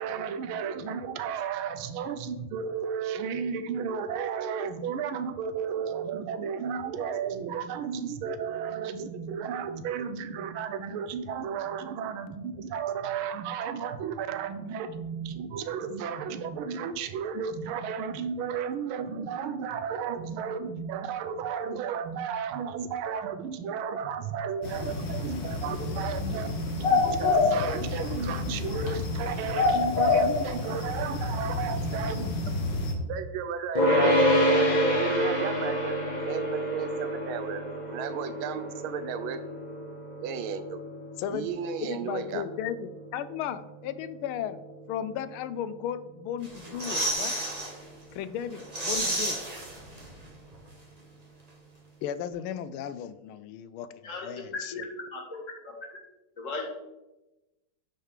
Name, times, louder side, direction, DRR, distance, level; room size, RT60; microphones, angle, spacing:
voice 1, 0.0-32.5 33.1-36.0 36.2-37.6 37.9-39.4 40.2-40.8 41.3-42.4, right 7 dB, 80° right, 10 dB, 1.5 m, -33 dB
sound 1, 24.6-32.9, left 4 dB, 60° left, 2.0 m, -28 dB
sound 2, 33.8-45.1, equal, 25° left, 1.4 m, -28 dB
voice 2, 41.8-44.6 44.9-47.4 48.1-49.4 52.0-54.8, left 9 dB, 90° left, 14 dB, 1.4 m, -35 dB
sound 3, 46.4-47.7 48.1-48.2 48.5-50.3 50.5-50.6, right 1 dB, 20° right, 1.6 m, -31 dB
voice 3, 54.0-54.3 54.7-54.8 55.1-55.4 55.6-55.7 56.4-56.7, left 3 dB, 40° left, 0 dB, 1.8 m, -36 dB
8.9 x 5.0 x 4.8 m, 1.0 s
omnidirectional pair, 2.3 m